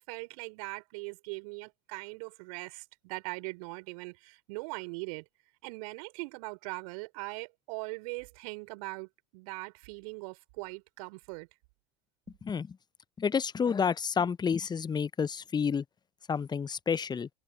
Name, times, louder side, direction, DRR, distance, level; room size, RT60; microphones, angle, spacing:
voice 1, 0.0-5.2 5.6-11.5, right 30 dB, 65° right, 5.0 m, -41 dB
voice 2, 12.4-12.8 13.2-15.8 16.3-17.3, left 6 dB, 20° left, 0.8 m, -29 dB
hypercardioid pair, 75°, 20 cm